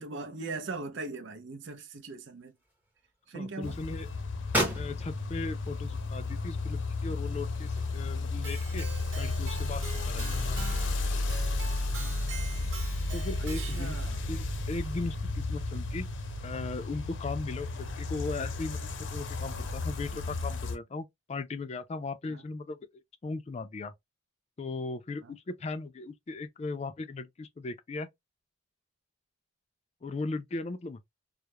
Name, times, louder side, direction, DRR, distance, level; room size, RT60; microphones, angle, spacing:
voice 1, 0.0-2.5 3.3-3.8 11.9-12.2 13.6-14.2 22.3-22.4 25.2-25.4, right 3 dB, 65° right, 0.5 m, -40 dB
sound 1, 2.3-3.2 3.6-10.9, equal, 10° right, 0.8 m, -37 dB
voice 2, 3.3-4.1 4.8-8.9 9.2-10.6 13.1-14.0 14.3-16.1 16.4-22.8 23.2-23.9 24.6-28.1 30.0-31.0, left 3 dB, 35° left, 0.3 m, -37 dB
sound 2, 3.6-20.8, left 2 dB, 75° left, 0.6 m, -33 dB
Keyboard (musical), 8.4-14.1, right 4 dB, 90° right, 0.9 m, -44 dB
2.3 x 2.0 x 2.8 m
head